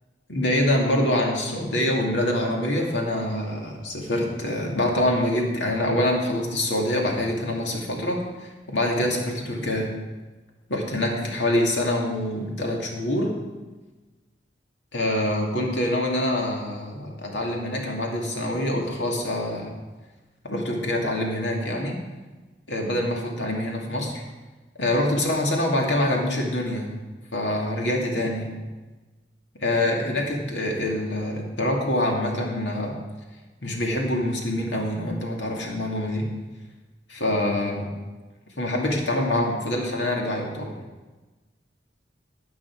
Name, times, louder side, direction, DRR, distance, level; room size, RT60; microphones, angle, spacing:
voice 1, 0.3-9.9 10.7-13.4 14.9-19.7 20.4-22.0 22.7-24.1 24.8-27.0 27.3-28.5 29.6-32.9 33.6-36.3 37.1-37.8 38.6-40.8, left 1 dB, 85° left, 0 dB, 2.3 m, -25 dB
13.0 x 8.7 x 4.7 m, 1.2 s
head